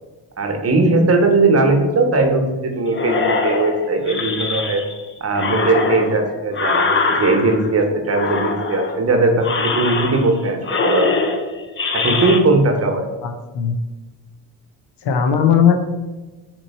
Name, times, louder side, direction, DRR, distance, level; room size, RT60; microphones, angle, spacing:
voice 1, 0.4-4.8 5.2-11.1 11.9-13.0, right 3 dB, 35° right, 3 dB, 0.9 m, -18 dB
sound 1, 2.9-5.0 5.4-7.8 8.1-9.0 9.4-10.4 10.6-12.4, left 4 dB, 30° left, 0.6 m, -22 dB
voice 2, 13.2-13.8 15.0-15.7, left 8 dB, 70° left, 5 dB, 0.8 m, -17 dB
4.3 x 3.0 x 4.1 m, 1.2 s
supercardioid pair, 70°, 42 cm